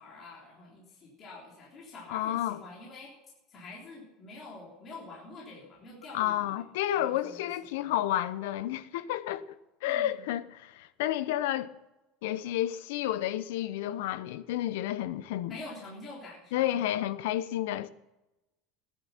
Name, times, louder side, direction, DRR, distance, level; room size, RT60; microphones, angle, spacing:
voice 1, 0.0-3.1 3.5-6.6 6.9-7.4 7.8-8.0 9.8-10.3 15.5-16.8, left 2 dB, 25° left, 3.5 m, -46 dB
voice 2, 2.1-2.6 6.1-11.7 12.2-15.6 16.5-17.9, left 13 dB, 80° left, 0.8 m, -31 dB
17.5 x 10.5 x 5.8 m
cardioid pair, 170°, 0 cm